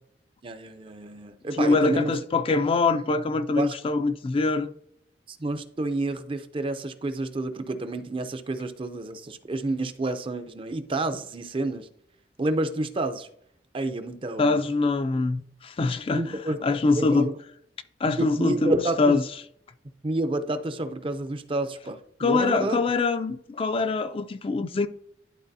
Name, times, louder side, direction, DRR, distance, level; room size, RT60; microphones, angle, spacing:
voice 1, 0.4-2.1 3.5-3.8 5.3-11.9 12.4-13.3 13.7-14.6 16.1-16.7 17.0-17.3 18.2-19.2 20.0-22.8, right 2 dB, 30° right, 0.5 m, -29 dB
voice 2, 1.6-4.7 14.4-17.3 18.0-18.7 19.0-19.2 22.2-24.9, left 3 dB, 30° left, 0.3 m, -24 dB
11.5 x 3.9 x 2.7 m
head